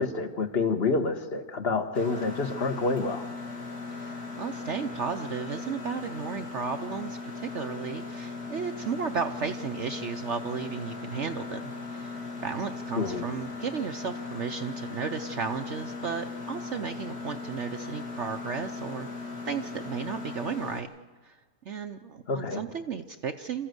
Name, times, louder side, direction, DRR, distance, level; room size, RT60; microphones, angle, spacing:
voice 1, 0.0-3.3 13.0-13.3 22.3-22.6, left 4 dB, 40° left, 8 dB, 1.4 m, -28 dB
Mechanisms, 1.9-20.8, left 3 dB, 65° left, 3.0 m, -38 dB
voice 2, 3.9-19.1 19.4-20.9 21.2-21.4 21.7-23.7, right 6 dB, 55° right, 8 dB, 0.9 m, -34 dB
27.5 x 14.5 x 8.0 m, 1.5 s
omnidirectional pair, 1.8 m